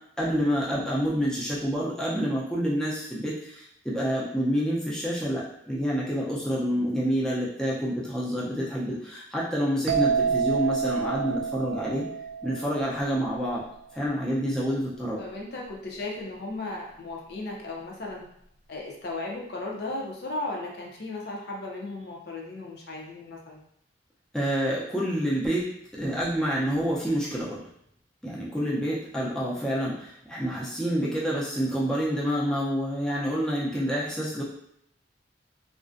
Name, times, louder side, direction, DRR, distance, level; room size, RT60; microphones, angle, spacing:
voice 1, 0.2-12.1 12.4-13.6 13.9-15.2 24.3-27.6 28.2-34.4, equal, 5° left, -7 dB, 0.4 m, -28 dB
sound 1, 9.9-13.5, right 6 dB, 75° right, 0.3 m, -28 dB
voice 2, 15.2-18.3 18.7-23.6 28.9-29.0, left 2 dB, 60° left, -1 dB, 0.5 m, -36 dB
2.4 x 2.1 x 2.4 m, 0.73 s
head